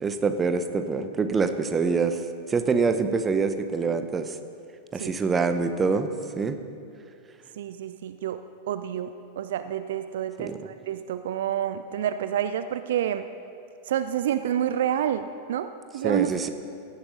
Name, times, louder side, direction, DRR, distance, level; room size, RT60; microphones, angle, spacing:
voice 1, 0.0-2.2 2.5-4.3 4.9-6.1 6.4-6.6 10.4-10.6 16.0-16.5, right 4 dB, 20° right, 9 dB, 0.8 m, -25 dB
voice 2, 7.6-8.4 8.7-13.3 13.9-16.5, right 10 dB, 60° right, 11 dB, 0.4 m, -29 dB
17.0 x 11.0 x 3.9 m, 2.5 s
figure-of-eight pair, 90°, 0 cm